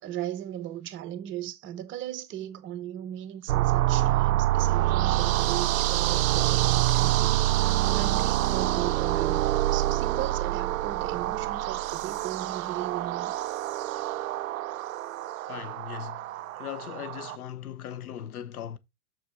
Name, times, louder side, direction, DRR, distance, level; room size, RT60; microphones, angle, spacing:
voice 1, 0.0-13.4 16.5-17.0, right 11 dB, 25° right, 0.9 m, -37 dB
sound 1, 3.5-17.4, right 15 dB, 65° right, 0.5 m, -26 dB
voice 2, 15.5-16.2 16.6-18.8, left 10 dB, 70° left, 1.0 m, -38 dB
6.9 x 6.4 x 3.7 m
hypercardioid pair, 110°, 45 cm